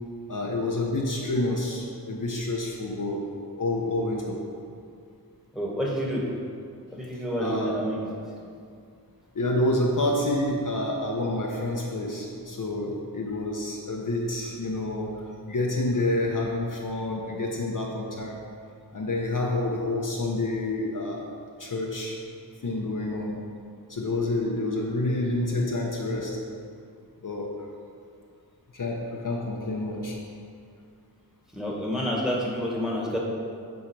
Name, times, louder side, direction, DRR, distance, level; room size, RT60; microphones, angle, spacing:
voice 1, 0.3-3.3 3.6-4.4 7.4-7.8 9.3-18.4 18.9-22.2 22.6-23.4 23.9-26.4 27.2-27.6 28.7-30.2, left 2 dB, 50° left, -1 dB, 0.9 m, -28 dB
voice 2, 5.5-6.3 6.9-8.1 31.5-33.2, equal, ahead, -3 dB, 1.6 m, -28 dB
8.8 x 3.7 x 4.8 m, 2.3 s
wide cardioid pair, 50°, 41 cm